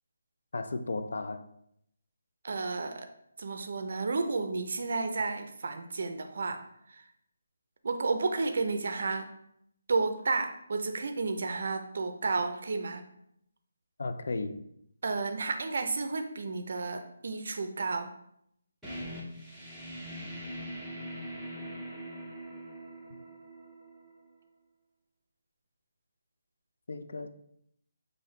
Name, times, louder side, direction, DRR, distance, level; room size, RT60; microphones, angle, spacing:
voice 1, 0.5-1.4 14.0-14.6 26.9-27.3, left 3 dB, 60° left, 0.4 m, -34 dB
voice 2, 2.4-3.1 3.4-6.6 6.9-7.0 7.8-9.3 9.9-13.0 15.0-18.1, right 3 dB, 50° right, 0.5 m, -32 dB
sound 1, 18.8-24.3, equal, ahead, 0.6 m, -42 dB
5.6 x 2.6 x 3.1 m
hypercardioid pair, 175°, 0 cm